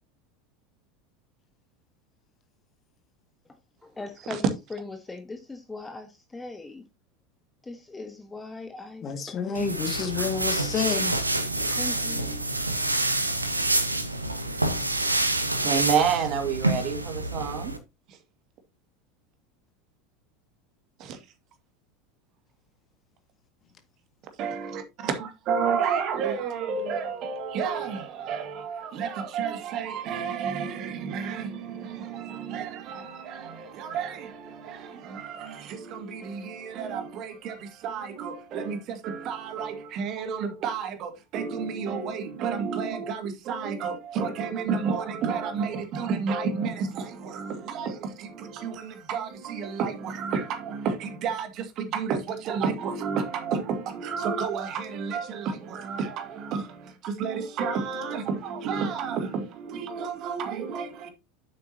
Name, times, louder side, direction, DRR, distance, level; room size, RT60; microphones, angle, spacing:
voice 1, 3.8-6.8 7.6-9.4 9.8-10.1 10.9-11.0 11.6-12.4, left 3 dB, 10° left, 1.3 m, -40 dB
voice 2, 9.0-11.1, left 6 dB, 30° left, 2.0 m, -29 dB
sound 1, 9.5-17.8, right 2 dB, 85° right, 1.1 m, -27 dB
voice 3, 15.6-17.7 18.1-18.2 21.0-21.2 24.4-61.1, right 6 dB, 45° right, 2.1 m, -31 dB
9.7 x 8.1 x 2.8 m
figure-of-eight pair, 75°, 0 cm